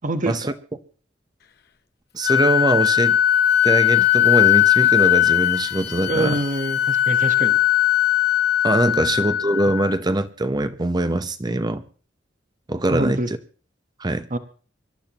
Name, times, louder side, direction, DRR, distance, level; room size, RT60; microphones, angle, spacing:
voice 1, 0.0-0.5 6.1-7.6 8.8-9.0 12.9-13.3 14.3-14.4, right 2 dB, 45° right, 1.1 m, -25 dB
voice 2, 2.1-3.2 3.6-6.4 8.6-11.8 12.7-13.2 14.0-14.3, right 1 dB, 25° right, 0.8 m, -22 dB
Wind instrument woodwind instrument, 2.2-10.0, left 12 dB, 60° left, 0.8 m, -19 dB
25.0 x 12.0 x 3.0 m
head